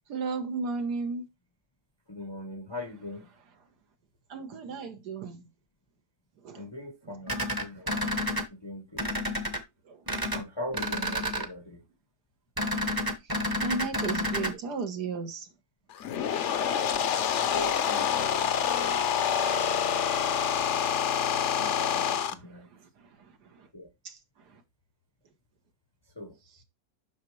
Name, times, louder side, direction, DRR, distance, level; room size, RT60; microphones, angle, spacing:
voice 1, 0.1-1.3 4.3-5.5 6.4-6.7 7.0-7.2 9.8-10.1 13.2-15.5 18.1-19.8 21.2-21.5 22.2-23.7 24.0-24.6 26.5-26.6, right 4 dB, 90° right, 1.8 m, -37 dB
voice 2, 2.1-3.3 6.6-8.1 8.5-9.1 10.3-11.8 17.5-18.1 18.4-19.0 21.6-22.7 23.7-23.9 26.2-26.4, left 1 dB, 25° left, 0.5 m, -41 dB
sound 1, 7.3-8.4 9.0-9.6 10.1-10.4 10.7-11.5 12.6-14.5, equal, 20° right, 0.7 m, -30 dB
sound 2, 15.9-22.3, left 8 dB, 60° left, 0.8 m, -27 dB
8.2 x 5.8 x 3.1 m
omnidirectional pair, 1.7 m